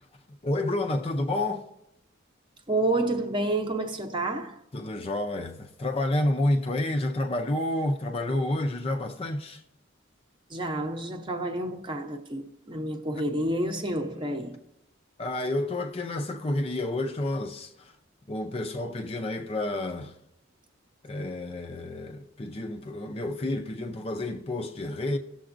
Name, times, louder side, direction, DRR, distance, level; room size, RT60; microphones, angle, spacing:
voice 1, 0.4-1.7 4.7-9.6 15.2-17.9 18.3-20.1 21.0-25.2, left 1 dB, 30° left, 0.5 m, -29 dB
voice 2, 2.7-4.6 10.5-14.6, right 1 dB, 25° right, 0.7 m, -29 dB
17.5 x 6.9 x 2.5 m
head